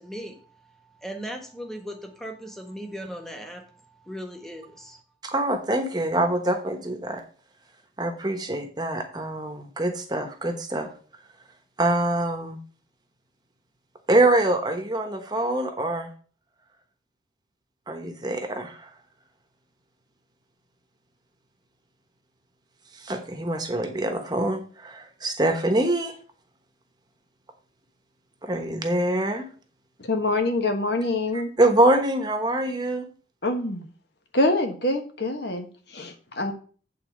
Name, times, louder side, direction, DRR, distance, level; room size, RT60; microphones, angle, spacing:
voice 1, 0.0-5.0, equal, ahead, 3 dB, 1.4 m, -38 dB
voice 2, 5.2-7.2 8.0-10.9 11.8-12.6 14.1-16.1 17.9-18.9 23.0-26.2 28.4-29.5 31.6-33.1, right 1 dB, 20° right, 5 dB, 1.1 m, -24 dB
voice 3, 30.0-31.5 33.4-33.9 34.3-36.5, left 2 dB, 65° left, 5 dB, 1.4 m, -25 dB
8.5 x 4.2 x 7.2 m, 0.42 s
head